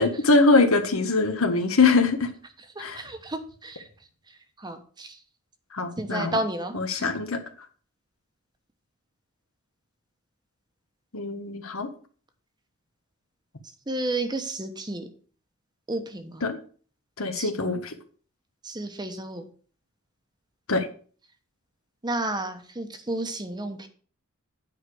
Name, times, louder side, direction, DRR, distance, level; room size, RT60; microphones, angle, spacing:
voice 1, 0.0-2.3 2.8-3.0 5.7-6.3 6.7-7.4 11.1-11.9 16.4-16.6 17.2-17.8 20.7-20.8, left 3 dB, 75° left, 7 dB, 1.3 m, -22 dB
voice 2, 2.7-3.9 4.3-5.2 6.0-7.1 13.9-15.1 15.9-16.5 17.3-17.5 18.6-19.5 22.0-23.9, right 2 dB, 20° right, 7 dB, 1.1 m, -32 dB
9.3 x 4.9 x 6.3 m, 0.43 s
head